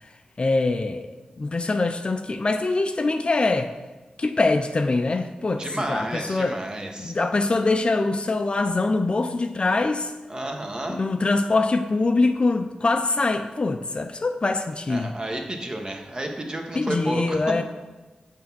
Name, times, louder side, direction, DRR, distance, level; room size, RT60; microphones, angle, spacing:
voice 1, 0.4-1.1 1.4-3.7 4.2-6.6 7.0-10.1 10.9-15.1 16.7-17.6, left 3 dB, 45° left, 7 dB, 0.4 m, -23 dB
voice 2, 5.6-7.1 10.3-11.0 14.9-17.4, right 1 dB, 30° right, 3 dB, 1.0 m, -31 dB
6.4 x 3.5 x 5.9 m, 1.2 s
cardioid pair, 60°, 3 cm